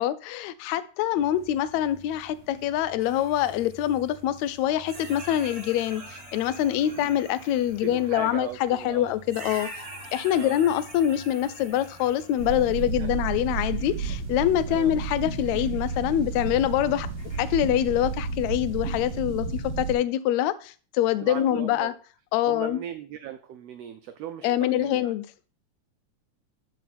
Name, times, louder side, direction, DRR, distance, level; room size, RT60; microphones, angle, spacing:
voice 1, 0.0-9.7 10.1-17.1 17.4-21.9 22.3-22.8 24.4-25.3, left 12 dB, 75° left, 1.8 m, -25 dB
sound 1, 1.1-19.2, right 2 dB, 20° left, 2.2 m, -50 dB
sound 2, 3.0-4.6 4.8-8.2 9.3-12.9 14.1-14.2 17.2-17.4, right 1 dB, 30° right, 2.5 m, -44 dB
voice 2, 7.8-9.1 10.3-10.6 13.0-13.1 14.7-14.9 21.2-21.9 22.5-25.1, right 9 dB, 90° right, 1.4 m, -38 dB
sound 3, 12.4-19.9, right 4 dB, 60° right, 3.0 m, -32 dB
12.5 x 4.6 x 4.2 m
omnidirectional pair, 3.5 m